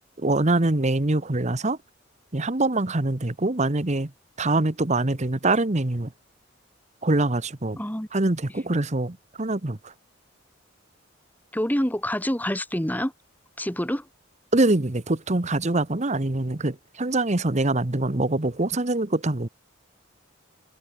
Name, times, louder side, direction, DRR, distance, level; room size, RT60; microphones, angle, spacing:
voice 1, 0.2-1.8 2.3-4.1 4.4-6.1 7.0-7.8 8.1-9.9 14.5-19.5, right 2 dB, 35° right, 1.2 m, -24 dB
voice 2, 7.8-8.1 11.5-13.1 13.6-14.1, equal, 10° left, 2.8 m, -26 dB
head